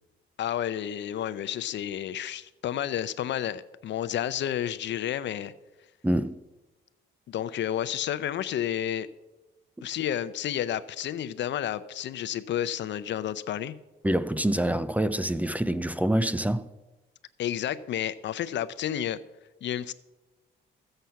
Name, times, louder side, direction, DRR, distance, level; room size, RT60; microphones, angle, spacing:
voice 1, 0.4-5.5 7.3-9.1 9.8-13.7 17.4-19.2 19.6-19.9, left 10 dB, 65° left, 0.6 m, -31 dB
voice 2, 6.0-6.4 14.0-16.6, right 1 dB, 5° right, 0.6 m, -26 dB
15.0 x 7.9 x 5.8 m
cardioid pair, 90°, 20 cm